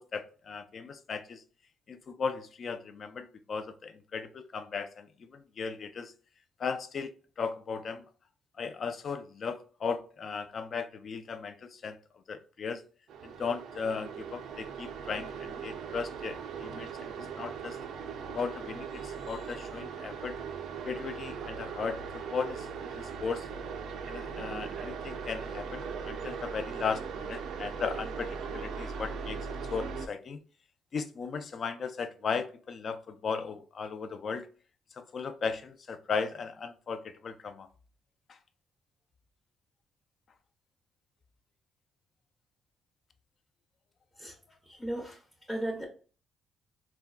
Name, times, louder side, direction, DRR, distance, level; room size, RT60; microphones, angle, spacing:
voice 1, 0.0-1.4 1.9-6.1 6.6-8.1 8.6-12.0 12.3-12.8 13.2-17.8 18.3-20.4 20.8-23.5 24.1-29.4 29.7-30.4 30.9-34.5 35.0-37.7 38.3-38.4, left 5 dB, 50° left, 0.3 m, -36 dB
sound 1, 13.1-30.1, right 6 dB, 75° right, 0.3 m, -39 dB
voice 2, 44.7-45.2 45.5-45.8, right 1 dB, ahead, 0.6 m, -35 dB
3.4 x 2.1 x 2.3 m
cardioid pair, 90°, 0 cm